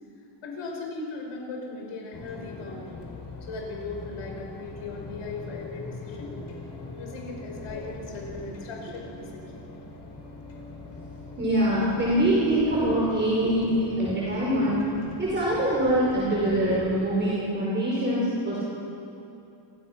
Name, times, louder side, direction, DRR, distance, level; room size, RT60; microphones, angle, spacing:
voice 1, 0.4-3.1 3.4-6.4 7.0-9.7, left 3 dB, 75° left, 0 dB, 5.1 m, -38 dB
sound 1, 2.1-17.2, left 3 dB, 55° left, 4.4 m, -42 dB
voice 2, 11.4-14.9 15.2-18.6, right 1 dB, 20° right, -7 dB, 5.2 m, -24 dB
28.5 x 22.5 x 6.1 m, 2.7 s
cardioid pair, 165°, 50 cm